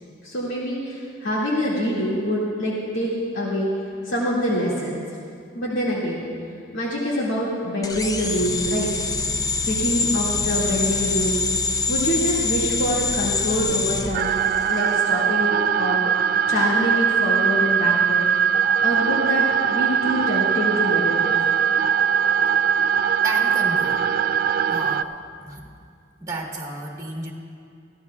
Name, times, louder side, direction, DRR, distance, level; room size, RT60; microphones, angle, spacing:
voice 1, 0.2-3.7 4.0-5.0 5.6-6.2 6.7-8.9 9.7-11.4 11.9-14.4 14.7-16.0 16.5-18.4 18.8-21.5, equal, 75° left, -6 dB, 2.2 m, -25 dB
sound 1, 7.8-14.9, left 4 dB, 20° left, 0.6 m, -25 dB
sound 2, 14.1-25.0, right 7 dB, 50° right, 0.3 m, -21 dB
voice 2, 23.2-24.1 24.7-25.6 26.2-27.3, right 2 dB, 15° right, -1 dB, 1.5 m, -32 dB
22.5 x 14.5 x 2.4 m, 2.4 s
head